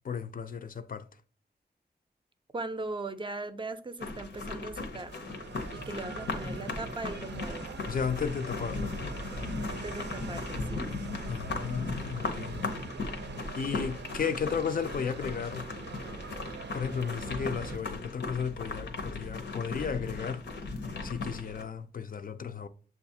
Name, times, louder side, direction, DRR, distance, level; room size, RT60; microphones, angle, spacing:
voice 1, 0.0-1.1 7.9-9.0 11.3-12.7 13.6-15.7 16.7-20.5 21.0-22.7, left 6 dB, 55° left, 0.4 m, -34 dB
voice 2, 2.5-5.2 5.7-7.7 9.7-10.9, right 3 dB, 30° right, 0.4 m, -39 dB
sound 1, 4.0-21.6, left 3 dB, 85° left, 0.8 m, -37 dB
sound 2, 5.1-17.8, right 5 dB, 80° right, 0.5 m, -44 dB
6.7 x 2.4 x 2.7 m
wide cardioid pair, 75°, 18 cm